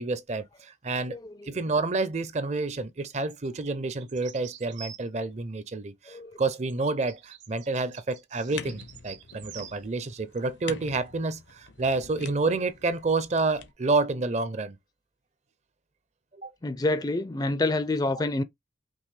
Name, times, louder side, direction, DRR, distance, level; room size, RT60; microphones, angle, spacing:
voice 1, 0.0-1.2 1.4-14.8 16.4-16.5, right 3 dB, 40° right, 0.5 m, -29 dB
voice 2, 1.1-1.5 6.1-6.4 16.6-18.4, left 2 dB, 20° left, 0.4 m, -28 dB
sound 1, 3.3-5.3 6.5-9.8 10.2-10.3, right 9 dB, 80° right, 0.9 m, -47 dB
sound 2, 8.5-13.7, left 5 dB, 80° left, 0.8 m, -45 dB
5.3 x 3.0 x 3.3 m
head